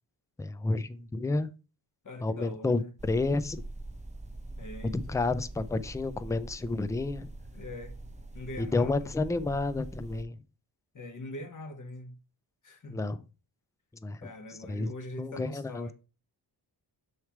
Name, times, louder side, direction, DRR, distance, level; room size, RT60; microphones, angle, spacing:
voice 1, 0.4-1.5 2.2-3.6 4.8-7.3 8.6-10.4 12.9-13.2 14.0-14.2 14.7-15.9, left 3 dB, 10° left, 0.3 m, -30 dB
voice 2, 2.0-2.9 4.6-5.2 7.5-7.9 8.3-9.1 10.9-12.2 12.6-13.0 14.2-15.9, left 1 dB, 45° left, 1.1 m, -42 dB
sound 1, 3.0-10.2, right 2 dB, 15° right, 0.7 m, -44 dB
7.1 x 3.2 x 4.5 m
wide cardioid pair, 105°, 44 cm